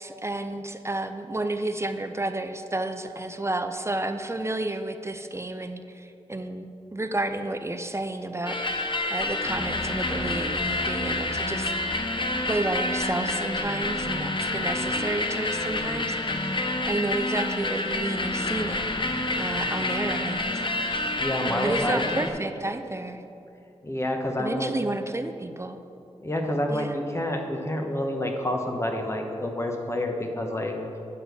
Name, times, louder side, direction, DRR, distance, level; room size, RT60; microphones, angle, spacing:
voice 1, 0.0-11.9 12.5-16.6 16.8-18.8 19.4-20.6 21.6-23.2 24.4-25.8 26.7-26.9, right 2 dB, 25° right, 8 dB, 0.5 m, -31 dB
sound 1, 8.5-22.3, left 2 dB, 45° left, 0.7 m, -28 dB
voice 2, 21.0-22.2 23.8-24.7 26.2-30.7, left 1 dB, 25° left, 2 dB, 1.1 m, -28 dB
9.5 x 4.3 x 6.8 m, 2.7 s
wide cardioid pair, 65°, 11 cm